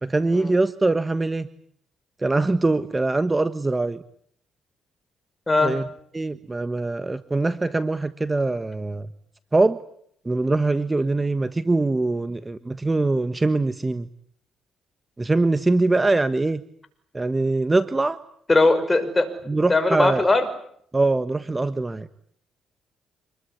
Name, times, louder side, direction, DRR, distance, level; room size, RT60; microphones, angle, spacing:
voice 1, 0.0-1.5 2.2-4.0 5.6-5.8 6.1-9.1 9.5-9.8 10.2-14.1 15.2-16.6 17.1-18.2 19.5-20.2 20.9-22.1, right 2 dB, 20° right, 12 dB, 1.4 m, -22 dB
voice 2, 18.5-19.3 19.7-20.5, left 2 dB, 20° left, 8 dB, 5.8 m, -19 dB
27.0 x 21.5 x 9.9 m, 0.66 s
cardioid pair, 90°, 0 cm